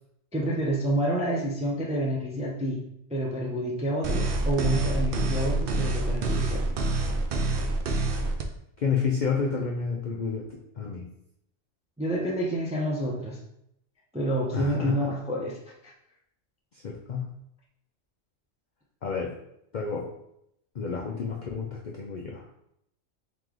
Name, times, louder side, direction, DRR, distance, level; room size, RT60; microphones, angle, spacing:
voice 1, 0.3-2.8 3.1-6.6 12.0-13.4 14.1-15.6 15.8-15.9, right 1 dB, 10° right, -3 dB, 0.3 m, -28 dB
sound 1, 4.0-8.4, right 2 dB, 65° right, 0.6 m, -26 dB
voice 2, 8.8-11.0 14.5-15.2 16.8-17.3 19.0-19.3 19.7-20.1 20.8-22.4, left 5 dB, 60° left, -1 dB, 0.4 m, -30 dB
3.4 x 3.1 x 3.7 m, 0.76 s
omnidirectional pair, 1.3 m